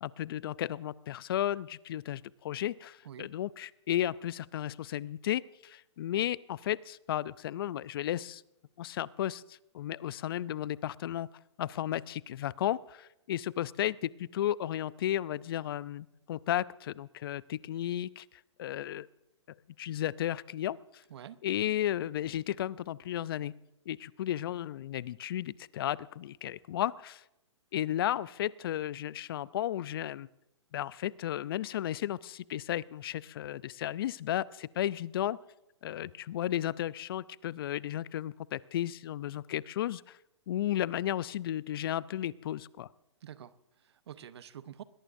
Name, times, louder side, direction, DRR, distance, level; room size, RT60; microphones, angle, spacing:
voice 1, 0.0-8.4 8.8-11.3 11.6-18.2 18.6-19.1 19.8-20.8 21.4-23.5 23.9-27.2 27.7-30.3 30.7-35.4 35.8-40.2 40.5-42.9, left 12 dB, 50° left, 20 dB, 0.5 m, -34 dB
voice 2, 43.2-44.8, right 9 dB, 60° right, 14 dB, 1.0 m, -47 dB
21.0 x 20.5 x 2.7 m, 0.87 s
hypercardioid pair, 130°, 15 cm